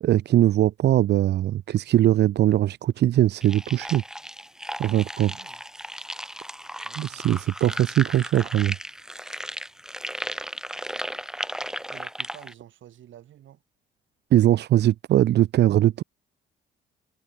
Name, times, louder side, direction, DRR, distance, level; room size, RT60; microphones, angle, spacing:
voice 1, 0.0-4.0 4.8-5.3 7.0-8.7 14.3-16.0, right 12 dB, 60° right, 0.5 m, -21 dB
sound 1, 3.4-12.5, equal, 5° right, 5.1 m, -35 dB
voice 2, 4.9-5.6 6.8-7.3 11.9-13.6, right 11 dB, 75° right, 7.9 m, -49 dB
cardioid pair, 90°, 20 cm